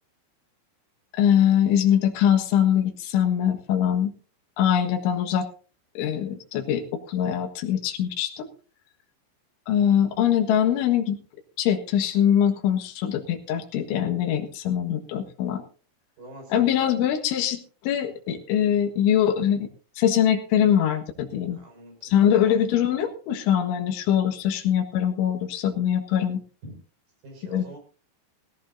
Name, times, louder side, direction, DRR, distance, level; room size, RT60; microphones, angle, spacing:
voice 1, 1.2-4.1 4.6-5.5 6.0-8.5 9.7-11.2 11.6-15.6 16.5-19.7 20.0-21.6 22.0-26.4 27.4-27.6, left 9 dB, 85° left, 5 dB, 3.9 m, -23 dB
voice 2, 16.2-16.9 21.5-22.5 26.6-26.8 27.2-27.8, right 2 dB, 45° right, 3 dB, 6.6 m, -43 dB
18.0 x 17.0 x 2.7 m, 0.36 s
omnidirectional pair, 5.4 m